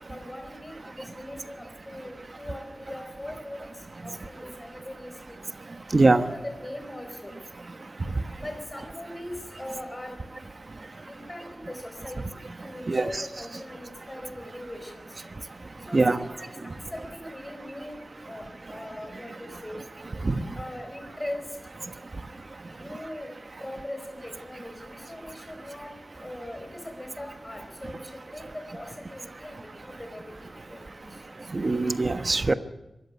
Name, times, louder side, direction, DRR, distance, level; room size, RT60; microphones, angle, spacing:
voice 1, 0.1-5.4 6.0-7.3 8.4-10.2 11.1-12.4 12.6-15.3 15.9-18.0 18.3-19.8 20.5-21.4 22.8-23.3 23.6-25.9 26.2-31.2, left 1 dB, 15° left, 4 dB, 4.4 m, -40 dB
voice 2, 5.9-6.2 12.9-13.2 15.9-16.2 20.2-20.4 31.5-32.5, right 3 dB, 40° right, 10 dB, 1.2 m, -22 dB
23.5 x 14.0 x 9.7 m, 0.98 s
wide cardioid pair, 105°, 0 cm